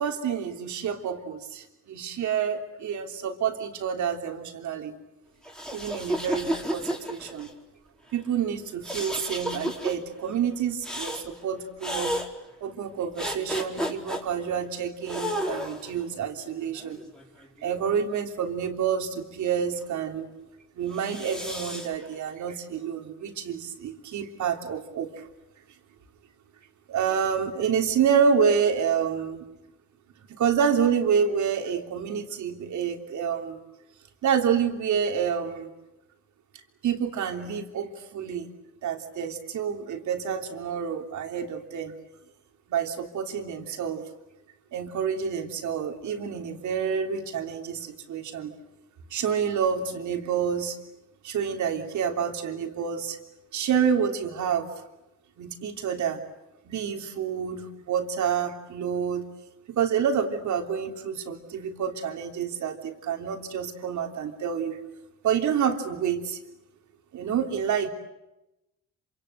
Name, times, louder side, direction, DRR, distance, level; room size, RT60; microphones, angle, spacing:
voice 1, 0.0-5.0 5.7-7.5 8.1-12.1 12.6-17.0 17.6-20.3 20.7-25.3 26.9-29.4 30.3-33.6 34.2-35.7 36.5-38.5 38.8-42.0 42.7-44.1 44.7-48.5 49.1-50.8 51.2-53.2 53.5-54.7 55.4-56.2 56.6-59.3 59.7-64.8 65.2-66.4 67.1-67.9, right 7 dB, 70° right, 4 dB, 3.3 m, -28 dB
sound 1, 5.4-7.5 8.8-9.9 10.8-11.3 11.8-12.3 13.2-14.2 15.1-15.9 16.7-17.9 20.9-21.9, equal, ahead, 4.2 m, -32 dB
27.0 x 26.0 x 8.1 m, 0.95 s
cardioid pair, 90°, 30 cm